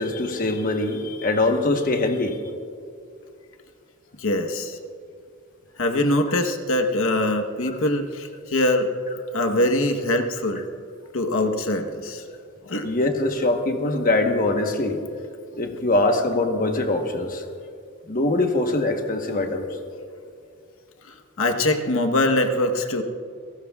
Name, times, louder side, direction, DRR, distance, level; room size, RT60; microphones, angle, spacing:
voice 1, 0.0-2.4 12.8-15.0 15.5-17.4 18.1-19.7, left 2 dB, 40° left, 4 dB, 1.1 m, -23 dB
voice 2, 4.2-4.8 5.8-8.9 9.3-10.6 11.1-12.2 12.7-12.9 21.4-23.0, left 1 dB, 65° left, 4 dB, 1.1 m, -23 dB
29.0 x 18.0 x 2.4 m, 2.3 s
head